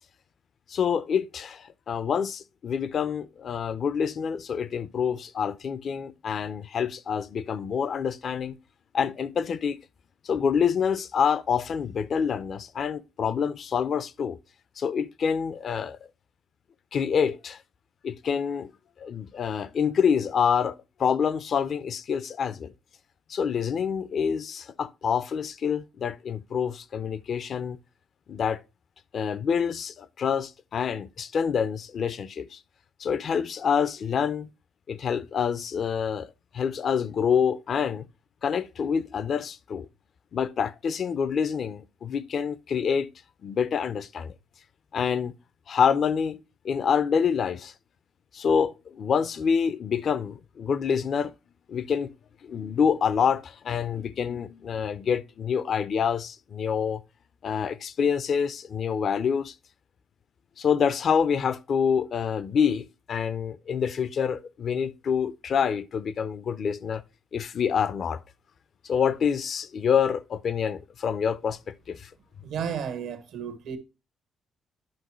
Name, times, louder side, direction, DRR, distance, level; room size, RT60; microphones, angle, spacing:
voice 1, 0.7-8.6 8.9-9.8 10.2-14.4 14.8-16.0 16.9-17.6 18.0-18.7 19.0-22.7 23.3-27.8 28.3-28.6 29.1-32.6 33.0-34.5 34.9-36.3 36.5-38.1 38.4-39.9 40.3-43.1 43.4-44.3 44.9-45.3 45.7-46.4 46.6-47.7 48.3-51.3 51.7-52.1 52.4-57.0 57.4-59.5 60.6-67.0 67.3-68.2 68.8-72.1, left 7 dB, 55° left, 0.5 m, -27 dB
voice 2, 72.4-73.8, right 7 dB, 80° right, 1.2 m, -33 dB
10.5 x 5.4 x 3.1 m
cardioid pair, 90°, 0 cm